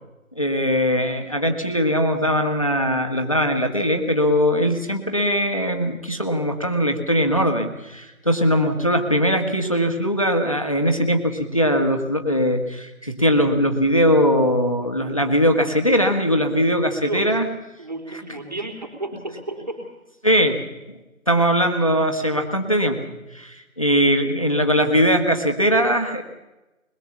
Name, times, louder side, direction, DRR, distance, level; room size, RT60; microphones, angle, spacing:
voice 1, 0.3-17.5 20.2-20.6 21.3-23.0 23.3-26.2, equal, 25° left, 5 dB, 1.5 m, -20 dB
voice 2, 17.0-17.4 17.8-19.9, right 2 dB, 30° right, 3 dB, 4.1 m, -32 dB
22.0 x 21.5 x 7.2 m, 1.0 s
figure-of-eight pair, 175°, 42 cm